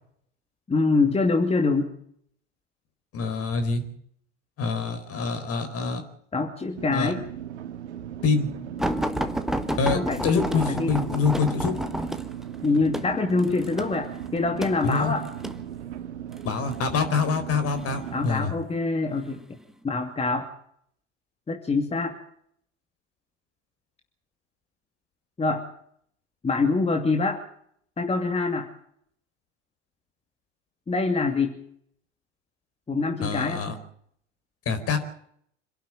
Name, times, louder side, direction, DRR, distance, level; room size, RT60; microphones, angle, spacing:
voice 1, 0.7-1.9 6.3-7.2 9.9-11.0 12.6-15.2 18.1-19.4 19.8-20.5 21.5-22.1 25.4-25.6 26.4-27.4 28.0-28.7 30.9-31.6 32.9-33.6, left 3 dB, 15° left, 4 dB, 2.6 m, -25 dB
voice 2, 3.1-3.8 4.6-6.0 6.9-7.1 8.2-8.5 9.8-11.7 14.8-15.1 16.4-18.5 33.2-33.7 34.6-35.0, left 5 dB, 40° left, 9 dB, 4.7 m, -25 dB
sound 1, 6.8-18.2, right 10 dB, 70° right, 2.1 m, -38 dB
sound 2, 8.8-15.6 16.4-16.8 17.7-18.4 19.1-19.3 19.7-19.8, equal, ahead, 1.6 m, -30 dB
26.5 x 11.5 x 9.0 m, 0.67 s
figure-of-eight pair, 80°, 35 cm